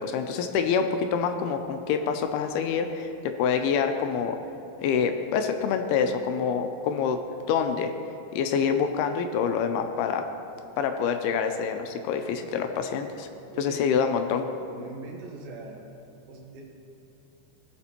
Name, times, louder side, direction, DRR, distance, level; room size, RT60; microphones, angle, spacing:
voice 1, 0.0-4.4 4.8-7.2 7.5-7.9 8.3-10.2 10.8-13.3 13.6-14.4, left 6 dB, 85° left, 6 dB, 2.5 m, -26 dB
voice 2, 12.1-12.4 13.5-13.9 14.7-15.9 16.3-16.6, right 3 dB, 55° right, -3 dB, 1.8 m, -42 dB
18.5 x 6.9 x 2.9 m, 2.7 s
omnidirectional pair, 4.5 m